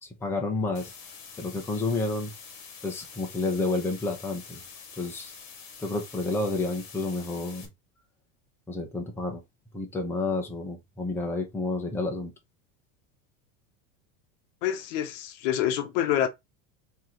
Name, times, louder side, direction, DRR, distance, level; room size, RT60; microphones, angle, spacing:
voice 1, 0.0-0.9 1.4-2.3 2.8-4.6 4.9-5.3 5.8-7.7 8.7-9.4 9.7-12.3, left 3 dB, 5° left, 0.8 m, -30 dB
sound 1, 0.7-7.7, left 5 dB, 45° left, 1.9 m, -46 dB
voice 2, 14.6-16.3, left 11 dB, 60° left, 0.9 m, -27 dB
4.7 x 3.0 x 3.7 m
cardioid pair, 165°, 40 cm